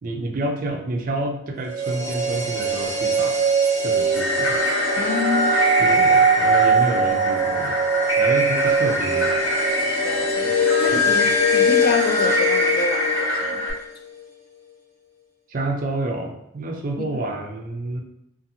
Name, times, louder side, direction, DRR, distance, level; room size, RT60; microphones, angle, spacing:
voice 1, 0.0-3.4 3.8-4.6 5.8-7.8 8.2-9.4 15.5-18.0, right 2 dB, 45° right, 3 dB, 0.4 m, -29 dB
sound 1, 1.6-13.8 14.0-14.1, right 2 dB, 15° right, 0.8 m, -21 dB
sound 2, 4.1-13.7, left 1 dB, 75° left, 1.0 m, -24 dB
voice 2, 5.0-6.2 10.0-10.5 10.8-13.6, left 3 dB, 50° left, 5 dB, 0.3 m, -28 dB
2.6 x 2.5 x 2.7 m, 0.85 s
head